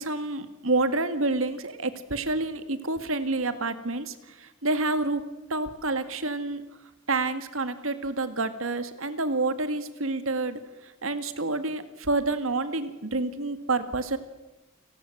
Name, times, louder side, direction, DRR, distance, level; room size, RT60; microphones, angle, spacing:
voice 1, 0.0-4.1 4.4-5.2 5.5-6.6 7.1-10.6 11.0-14.2, right 2 dB, 80° right, 10 dB, 2.1 m, -28 dB
29.0 x 19.0 x 8.0 m, 1.1 s
head